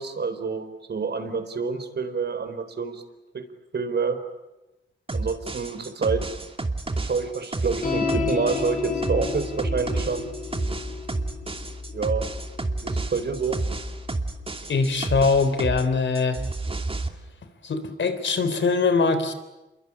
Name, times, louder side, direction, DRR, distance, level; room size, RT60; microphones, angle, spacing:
voice 1, 0.0-3.0 3.3-3.5 3.7-4.2 5.1-6.2 7.0-10.2 11.9-12.3 12.8-13.6, right 5 dB, 55° right, 9 dB, 4.3 m, -27 dB
sound 1, 5.1-15.9 16.1-17.1, right 3 dB, 30° right, 2.6 m, -30 dB
sound 2, 7.8-14.5, left 4 dB, 45° left, 5.5 m, -32 dB
voice 2, 14.7-16.4 17.6-19.3, left 4 dB, 65° left, 10 dB, 3.8 m, -22 dB
27.5 x 23.0 x 8.7 m, 1.0 s
cardioid pair, 75°, 20 cm